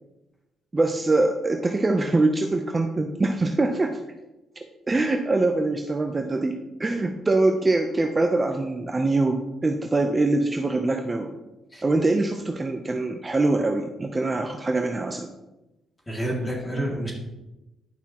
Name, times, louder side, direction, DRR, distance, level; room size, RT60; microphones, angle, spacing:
voice 1, 0.7-4.0 4.9-11.3 11.8-15.3, right 2 dB, 25° right, 4 dB, 0.6 m, -23 dB
voice 2, 16.1-17.1, right 1 dB, 15° left, -1 dB, 2.4 m, -28 dB
10.5 x 5.7 x 3.0 m, 0.98 s
cardioid pair, 90°, 0 cm